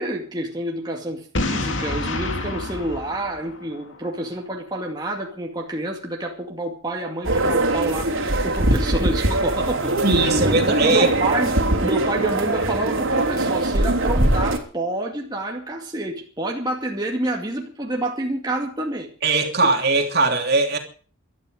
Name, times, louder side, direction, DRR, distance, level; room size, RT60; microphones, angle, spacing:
voice 1, 0.0-19.1, right 1 dB, 20° right, 2.3 m, -28 dB
Boom, 1.3-4.2, left 2 dB, 65° left, 2.9 m, -28 dB
sound 1, 7.2-14.6, right 1 dB, 75° right, 3.2 m, -21 dB
voice 2, 10.0-11.1 19.2-20.8, right 3 dB, 50° right, 3.1 m, -20 dB
19.0 x 13.0 x 5.1 m
head